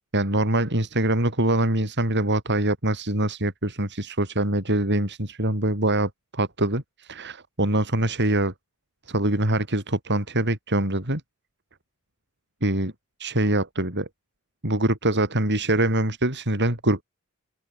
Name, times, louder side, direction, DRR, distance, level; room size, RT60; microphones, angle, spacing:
voice 1, 0.1-8.5 9.1-11.2 12.6-12.9 13.2-14.1 14.6-17.0, right 1 dB, 55° right, 7.8 m, -24 dB
open air
head